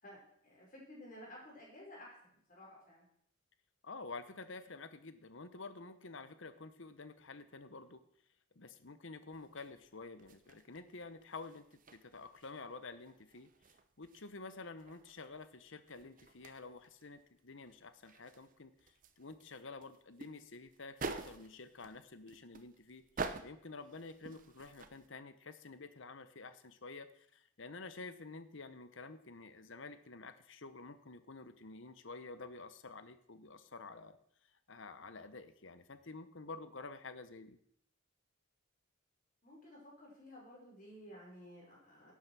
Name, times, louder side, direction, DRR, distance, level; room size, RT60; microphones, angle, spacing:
voice 1, 0.0-3.1 39.4-42.1, left 1 dB, 40° left, -3 dB, 5.3 m, -54 dB
voice 2, 3.8-8.0 8.5-13.5 14.0-23.1 23.4-34.2 34.7-37.6, left 3 dB, 60° left, 11 dB, 1.0 m, -50 dB
sound 1, 9.3-25.1, right 3 dB, 40° right, 0.8 m, -49 dB
11.5 x 8.6 x 6.2 m, 0.69 s
head